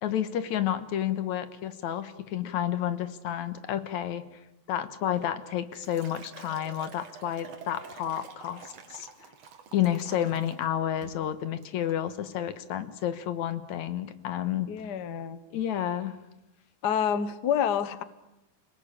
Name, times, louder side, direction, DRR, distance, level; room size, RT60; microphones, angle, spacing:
voice 1, 0.0-4.2 4.7-9.3 9.7-14.7 15.5-16.2, left 11 dB, 75° left, 12 dB, 2.6 m, -30 dB
Liquid, 5.1-10.7 11.0-11.3 11.6-12.0, right 6 dB, 60° right, 2.9 m, -49 dB
voice 2, 14.7-15.4 16.8-18.0, left 8 dB, 55° left, 13 dB, 1.2 m, -28 dB
28.0 x 19.0 x 8.7 m, 0.93 s
omnidirectional pair, 3.3 m